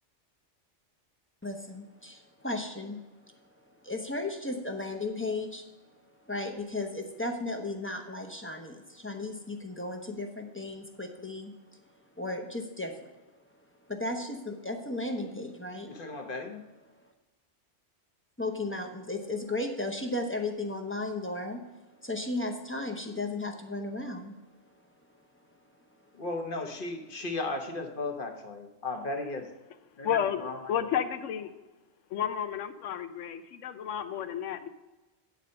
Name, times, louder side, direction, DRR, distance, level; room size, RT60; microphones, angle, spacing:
voice 1, 1.4-3.4 3.8-5.6 6.2-11.8 12.2-13.2 13.9-15.9 18.4-21.6 22.0-24.4, left 2 dB, 15° left, 3 dB, 0.7 m, -35 dB
voice 2, 15.8-16.6 26.1-29.5 30.0-30.6, left 2 dB, 50° left, 4 dB, 1.2 m, -35 dB
voice 3, 30.0-30.4 30.7-31.5 32.1-34.7, left 9 dB, 90° left, 10 dB, 1.0 m, -31 dB
9.4 x 4.1 x 6.4 m, 1.1 s
omnidirectional pair, 1.2 m